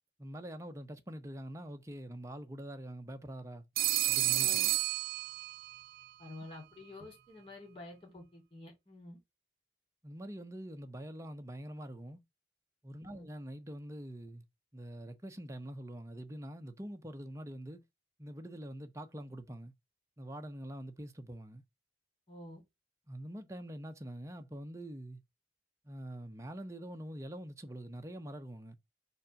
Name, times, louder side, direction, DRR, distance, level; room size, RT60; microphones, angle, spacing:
voice 1, 0.2-3.6 4.1-4.6 10.0-12.2 12.8-14.4 14.7-17.8 18.2-19.7 20.2-21.6 23.1-25.2 25.8-28.7, right 1 dB, 15° right, 0.8 m, -45 dB
Telephone, 3.8-5.8, right 15 dB, 55° right, 0.6 m, -30 dB
voice 2, 4.3-4.7 6.2-9.2 13.0-13.2 22.3-22.6, left 2 dB, 35° left, 3.3 m, -49 dB
5.0 x 4.1 x 5.7 m
head